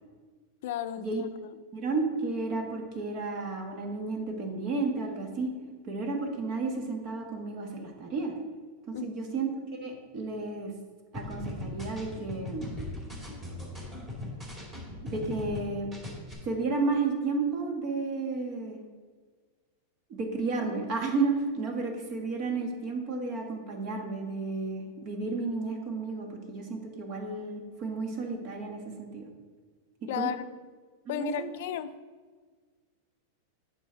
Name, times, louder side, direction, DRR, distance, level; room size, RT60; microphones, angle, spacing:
voice 1, 0.6-1.3 8.9-9.1 30.1-30.5 31.1-31.9, left 10 dB, 65° left, 11 dB, 0.5 m, -33 dB
voice 2, 1.7-5.5 5.8-8.3 8.9-9.5 9.8-10.7 11.1-12.7 15.0-15.9 16.4-18.8 20.1-29.3 30.0-30.3 31.0-31.5, right 3 dB, 40° right, 3 dB, 1.6 m, -32 dB
sound 1, 11.1-15.6 15.9-16.3, left 2 dB, 15° right, 2.5 m, -39 dB
8.9 x 6.0 x 3.9 m, 1.5 s
supercardioid pair, 145°, 0 cm